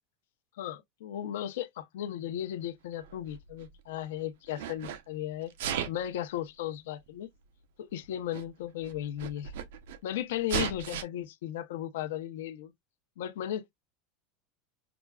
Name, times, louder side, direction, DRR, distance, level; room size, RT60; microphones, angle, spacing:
voice 1, 0.6-5.5 5.9-7.3 7.8-9.5 10.0-12.7 13.2-13.7, left 11 dB, 85° left, 0.7 m, -36 dB
Sneeze, 3.0-4.0 4.5-5.0 5.5-6.1 7.1-7.2 8.0-8.1 8.3-8.4 8.8-10.0 10.5-11.0, right 8 dB, 85° right, 0.7 m, -35 dB
5.9 x 2.4 x 2.3 m
supercardioid pair, 150°, 0 cm